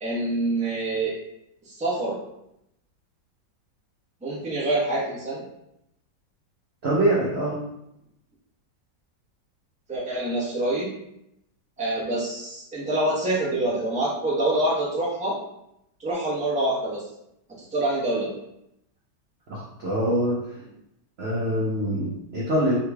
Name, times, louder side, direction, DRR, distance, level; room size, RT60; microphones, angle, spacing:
voice 1, 0.0-1.1 1.6-2.2 4.2-5.4 9.9-10.9 11.8-15.4 16.0-17.0 17.6-18.4, right 1 dB, 5° right, -8 dB, 0.7 m, -26 dB
voice 2, 6.8-7.6 19.5-20.4 21.2-22.8, right 1 dB, 55° right, -6 dB, 0.7 m, -24 dB
3.7 x 3.1 x 2.3 m, 0.82 s
omnidirectional pair, 1.9 m